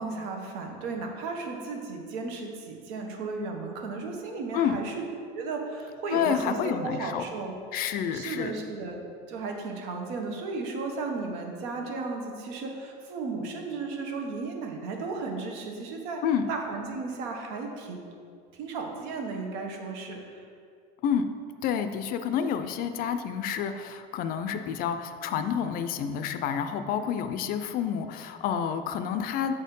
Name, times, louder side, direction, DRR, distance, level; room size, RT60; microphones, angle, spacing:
voice 1, 0.0-5.0 5.3-7.6 8.1-9.0 9.3-16.2 16.5-18.0 18.5-20.5, right 3 dB, 90° right, 2 dB, 1.2 m, -35 dB
voice 2, 6.1-7.2 7.7-8.5 16.2-16.5 21.0-21.3 21.6-29.6, left 8 dB, 45° left, 9 dB, 0.4 m, -29 dB
7.0 x 4.3 x 5.3 m, 2.3 s
cardioid pair, 165°, 21 cm